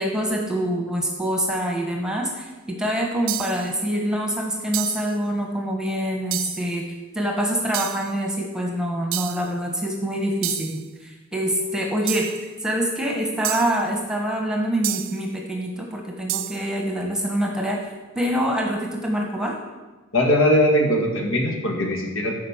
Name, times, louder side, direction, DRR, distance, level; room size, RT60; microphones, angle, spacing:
voice 1, 0.0-6.9 7.1-12.3 12.6-17.8 18.1-19.6, equal, 5° right, 1 dB, 1.3 m, -25 dB
sound 1, 3.3-3.7 4.7-5.2 6.3-6.7 7.7-8.1 9.1-9.5 10.4-10.8 12.1-12.5 13.4-13.8 14.8-15.2 16.3-16.7, right 14 dB, 65° right, 0.5 m, -29 dB
voice 2, 20.1-22.3, left 1 dB, 65° left, 2 dB, 1.9 m, -20 dB
13.5 x 5.3 x 7.2 m, 1.2 s
head